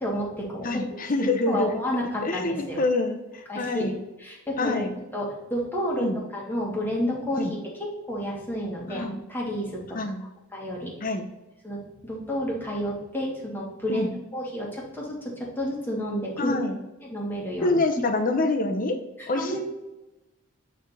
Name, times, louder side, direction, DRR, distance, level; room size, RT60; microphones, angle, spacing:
voice 1, 0.0-0.7 1.5-2.8 3.5-3.9 4.2-4.8 5.1-7.5 8.1-10.0 10.5-10.9 11.6-16.6 17.0-17.8 19.2-19.6, equal, 10° left, -3 dB, 1.6 m, -30 dB
voice 2, 0.6-1.8 2.2-4.0 4.6-4.9 6.0-6.2 7.4-7.5 8.9-9.2 9.9-10.2 11.0-11.3 13.9-14.1 16.4-16.8 17.6-19.0 19.3-19.6, left 2 dB, 40° left, 6 dB, 0.8 m, -26 dB
8.6 x 3.4 x 4.2 m, 1.0 s
head